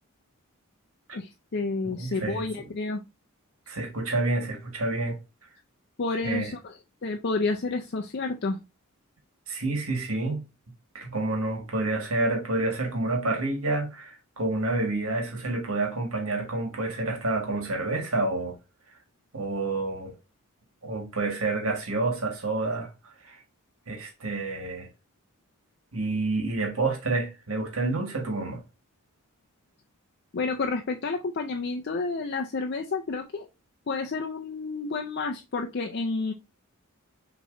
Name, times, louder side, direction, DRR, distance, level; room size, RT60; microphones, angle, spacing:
voice 1, 1.1-3.0 6.0-8.6 30.3-33.5 33.9-36.3, left 3 dB, 50° left, 0.5 m, -30 dB
voice 2, 2.0-2.4 3.7-5.2 6.2-6.5 9.5-10.4 10.9-18.6 19.3-20.1 20.8-23.4 23.9-24.9 25.9-28.6, right 2 dB, 70° right, 1.7 m, -29 dB
6.2 x 3.1 x 2.6 m
head